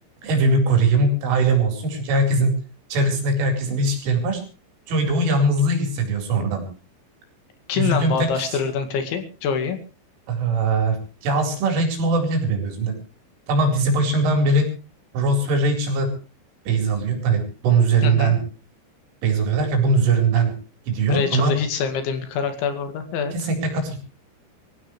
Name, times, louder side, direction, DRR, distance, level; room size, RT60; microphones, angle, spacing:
voice 1, 0.2-2.5 2.9-4.4 4.9-6.6 7.7-8.6 10.3-12.9 13.5-14.7 15.1-16.1 16.7-18.4 19.2-20.5 20.9-21.6 23.3-24.0, right 3 dB, 80° right, 5 dB, 6.7 m, -21 dB
voice 2, 7.7-9.8 18.0-18.3 21.1-23.3, left 6 dB, 75° left, 8 dB, 4.4 m, -25 dB
25.0 x 15.5 x 3.2 m, 0.34 s
omnidirectional pair, 5.6 m